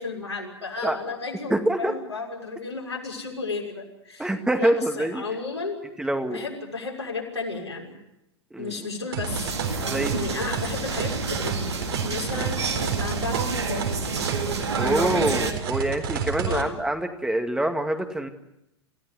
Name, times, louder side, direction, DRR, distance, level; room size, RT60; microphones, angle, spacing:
voice 1, 0.0-5.8 6.3-8.0 8.6-9.9 10.1-11.7 12.0-13.9 14.8-15.3 16.4-16.7, left 4 dB, 90° left, -1 dB, 6.4 m, -33 dB
voice 2, 1.5-1.9 4.2-5.2 6.0-6.4 8.5-8.9 9.8-10.2 12.3-12.4 14.8-18.3, right 1 dB, 5° right, 5 dB, 2.1 m, -25 dB
sound 1, 9.1-16.6, right 6 dB, 60° right, 4.0 m, -31 dB
sound 2, 9.2-15.5, right 4 dB, 75° right, 3.7 m, -29 dB
27.5 x 16.0 x 9.6 m, 0.88 s
figure-of-eight pair, 95°, 14 cm